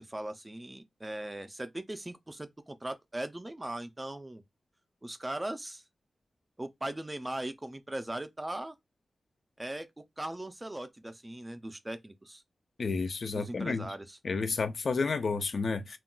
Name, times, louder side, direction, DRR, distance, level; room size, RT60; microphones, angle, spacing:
voice 1, 0.0-4.4 5.0-5.8 6.6-8.8 9.6-12.4 13.3-14.2, right 1 dB, 15° right, 0.4 m, -39 dB
voice 2, 12.8-13.9 14.2-16.0, left 4 dB, 55° left, 0.4 m, -31 dB
2.3 x 2.2 x 3.7 m
wide cardioid pair, 135°, 0 cm